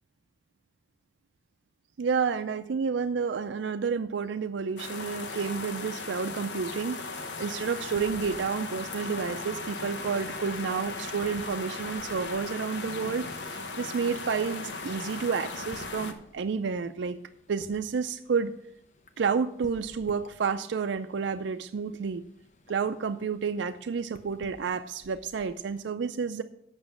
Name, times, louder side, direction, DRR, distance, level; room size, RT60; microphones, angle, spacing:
voice 1, 2.0-17.2 17.5-18.5 19.2-22.2 22.7-26.4, right 5 dB, 90° right, 9 dB, 0.4 m, -30 dB
sound 1, 4.8-16.1, left 3 dB, 85° left, 1.1 m, -37 dB
sound 2, 7.6-25.8, left 1 dB, 40° left, 0.8 m, -55 dB
8.1 x 6.0 x 7.7 m, 0.75 s
head